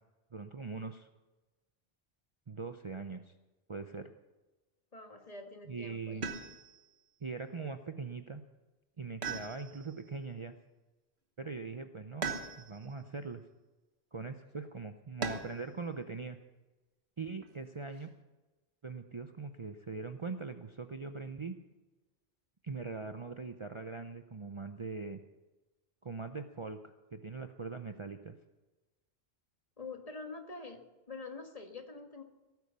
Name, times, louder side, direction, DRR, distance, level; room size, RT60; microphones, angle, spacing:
voice 1, 0.3-1.1 2.5-3.3 3.7-4.1 5.7-6.3 7.2-8.4 9.0-10.6 11.4-12.3 12.6-13.4 14.1-16.4 17.2-18.1 18.8-21.5 22.6-25.2 26.0-28.3, right 4 dB, 35° right, 6 dB, 0.6 m, -41 dB
voice 2, 4.9-6.4 29.8-32.2, left 3 dB, 35° left, 4 dB, 1.6 m, -46 dB
sound 1, 6.2-6.9 9.2-10.0 12.2-12.9 15.2-15.7 17.4-18.1, right 5 dB, 80° right, 1.6 m, -39 dB
17.5 x 9.4 x 6.9 m, 1.1 s
omnidirectional pair, 1.1 m